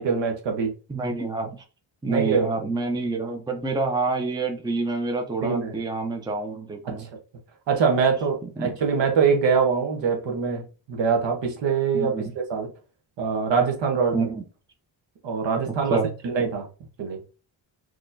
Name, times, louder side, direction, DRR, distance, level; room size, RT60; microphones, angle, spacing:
voice 1, 0.0-0.7 2.1-2.5 5.4-5.7 6.8-7.0 7.7-10.6 10.9-12.1 12.5-12.7 13.2-14.3 15.2-16.7 17.0-17.2, right 5 dB, 65° right, 1.1 m, -23 dB
voice 2, 0.9-1.6 2.0-7.1 8.6-8.7 11.9-12.3 14.1-14.4 15.7-16.1, right 3 dB, 10° right, 0.6 m, -27 dB
4.2 x 3.0 x 2.6 m
cardioid pair, 115°, 47 cm